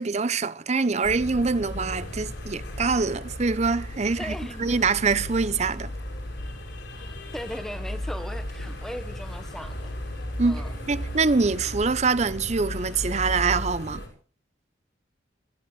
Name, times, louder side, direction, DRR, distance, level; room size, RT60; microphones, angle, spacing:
voice 1, 0.0-5.9 10.4-14.0, right 4 dB, 35° right, 0.6 m, -25 dB
sound 1, 1.0-14.1, left 1 dB, 70° left, 7.0 m, -35 dB
voice 2, 4.2-4.9 6.9-9.9 10.4-10.7, equal, ahead, 1.2 m, -38 dB
26.0 x 14.0 x 3.3 m
head